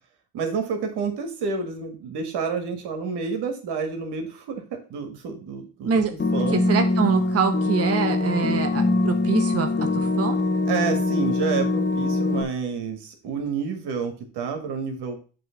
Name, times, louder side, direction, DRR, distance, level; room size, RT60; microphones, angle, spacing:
voice 1, 0.3-4.6 4.9-6.0 6.3-6.6 10.7-15.2, right 5 dB, 80° right, 5 dB, 1.8 m, -29 dB
sound 1, 6.2-12.4, left 2 dB, 25° left, 1.0 m, -23 dB
voice 2, 6.5-10.4, right 6 dB, 35° right, 7 dB, 0.9 m, -25 dB
7.6 x 3.3 x 5.7 m, 0.37 s
cardioid pair, 75°, 40 cm